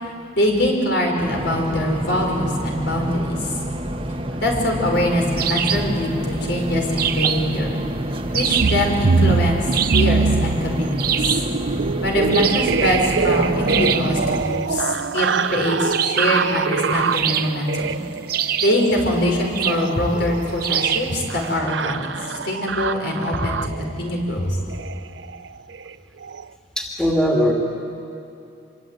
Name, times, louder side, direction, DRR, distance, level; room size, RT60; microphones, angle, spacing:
voice 1, 0.4-3.4 4.4-7.8 8.3-9.6 9.9-11.2 12.0-18.0 18.6-24.6, left 1 dB, 65° left, 1 dB, 5.4 m, -23 dB
sound 1, 1.2-14.4, right 1 dB, 30° right, 1.3 m, -28 dB
sound 2, 5.4-5.9 7.0-7.6 8.3-8.9 9.7-10.2 11.0-11.5 12.3-12.8 13.7-14.1 15.9-16.4 17.1-17.8 18.3-18.9 19.5-19.9 20.6-21.2, right 9 dB, 50° right, 1.0 m, -24 dB
sound 3, 8.6-24.0 24.7-25.0 25.2-25.5 25.7-25.9 26.2-26.4, right 5 dB, 75° right, 0.6 m, -24 dB
voice 2, 26.8-27.5, equal, 5° left, -1 dB, 2.7 m, -20 dB
26.0 x 23.5 x 9.3 m, 2.7 s
head